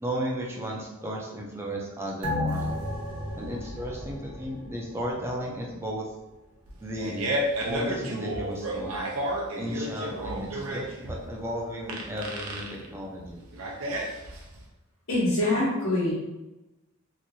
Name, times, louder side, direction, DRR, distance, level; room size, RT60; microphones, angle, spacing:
voice 1, 0.0-2.7 3.4-6.1 6.8-7.2 7.6-9.0 9.6-13.4, equal, 10° right, -2 dB, 0.4 m, -34 dB
sound 1, 2.2-5.1 5.5-5.6, left 1 dB, 70° right, 1.0 m, -33 dB
Fart, 6.7-14.6, right 1 dB, 90° right, 0.6 m, -32 dB
voice 2, 15.1-16.1, left 1 dB, 80° left, -8 dB, 1.2 m, -24 dB
3.0 x 2.5 x 2.6 m, 1.0 s
head